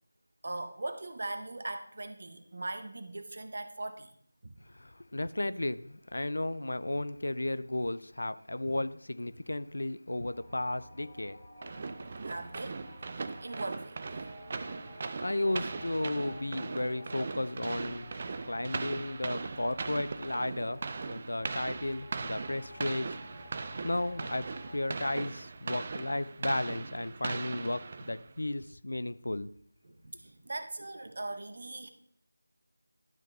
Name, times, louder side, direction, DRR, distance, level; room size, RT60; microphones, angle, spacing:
voice 1, 0.4-4.1 4.4-4.5 12.2-12.8 13.1-14.0 29.8-31.9, right 2 dB, 50° right, 0.7 m, -40 dB
voice 2, 4.7-11.4 11.6-11.7 15.2-18.1 18.5-23.2 23.8-29.5, left 1 dB, 65° left, 0.4 m, -34 dB
sound 1, 10.3-24.8, left 1 dB, 30° left, 2.2 m, -52 dB
sound 2, 11.6-28.4, right 4 dB, 30° right, 0.3 m, -39 dB
11.5 x 4.0 x 3.2 m
figure-of-eight pair, 165°, 0 cm